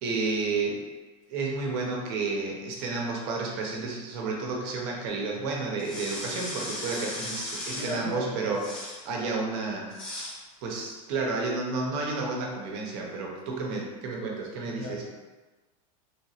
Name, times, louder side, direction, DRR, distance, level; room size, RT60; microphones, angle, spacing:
voice 1, 0.0-0.9 1.3-8.6 9.0-9.9 10.2-10.3 10.6-15.0, right 3 dB, 45° right, -1 dB, 0.7 m, -31 dB
sound 1, 5.8-8.0 8.5-9.0 9.9-10.4, left 1 dB, 70° left, 1.4 m, -37 dB
voice 2, 7.7-8.5 14.6-15.0, left 1 dB, 40° left, -3 dB, 0.8 m, -36 dB
3.1 x 2.9 x 2.8 m, 1.2 s
supercardioid pair, 165°, 18 cm